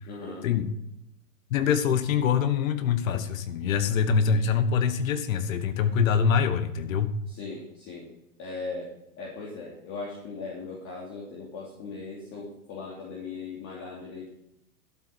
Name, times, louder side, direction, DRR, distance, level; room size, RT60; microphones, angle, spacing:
voice 1, 0.1-0.5 7.3-8.1 8.4-8.9 9.2-14.3, left 4 dB, 40° left, -4 dB, 3.0 m, -38 dB
voice 2, 1.5-7.1, left 7 dB, 60° left, 12 dB, 1.2 m, -24 dB
12.5 x 8.1 x 4.6 m, 0.84 s
hypercardioid pair, 110°, 45 cm